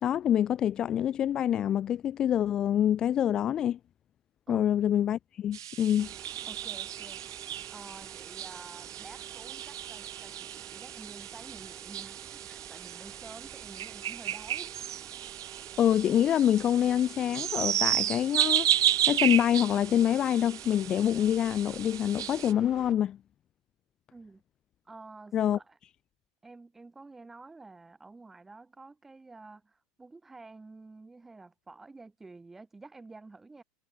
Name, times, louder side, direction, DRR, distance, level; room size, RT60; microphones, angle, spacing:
voice 1, 0.0-3.8 4.5-6.1 15.8-18.7 19.1-23.2 25.3-25.6, left 10 dB, 35° left, 0.5 m, -26 dB
sound 1, 5.5-22.5, right 11 dB, 80° right, 0.4 m, -33 dB
sound 2, 6.0-22.9, right 9 dB, 35° right, 3.2 m, -50 dB
voice 2, 6.5-7.2 7.7-14.8 24.1-24.4 24.9-25.8 26.4-33.6, right 3 dB, 15° right, 5.5 m, -50 dB
hypercardioid pair, 90°, 2 cm